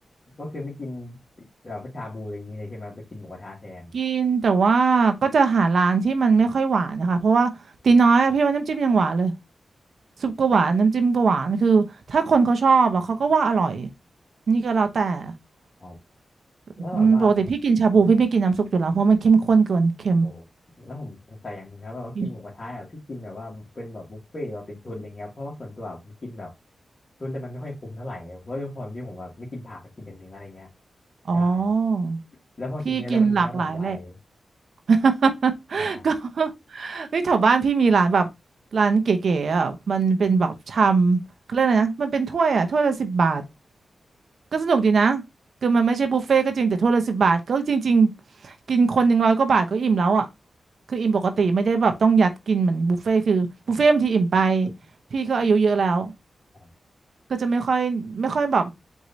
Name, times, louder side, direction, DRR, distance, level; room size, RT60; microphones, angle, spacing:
voice 1, 0.4-1.2 1.6-3.9 15.8-15.9 16.8-17.5 20.2-20.4 20.8-26.5 27.2-30.7 31.3-31.7 32.6-34.2 35.8-36.1 54.6-54.7 56.5-56.7, left 2 dB, 45° left, 1.8 m, -36 dB
voice 2, 3.9-7.5 7.8-9.3 10.2-13.9 14.5-15.3 16.9-20.3 22.2-22.3 31.3-32.2 32.9-34.0 34.9-38.3 38.7-41.2 41.5-43.4 44.5-45.2 45.6-48.1 48.4-50.3 50.9-54.7 55.1-56.1 57.3-58.7, right 4 dB, 75° right, 0.7 m, -20 dB
4.8 x 2.7 x 3.9 m
cardioid pair, 60°, 0 cm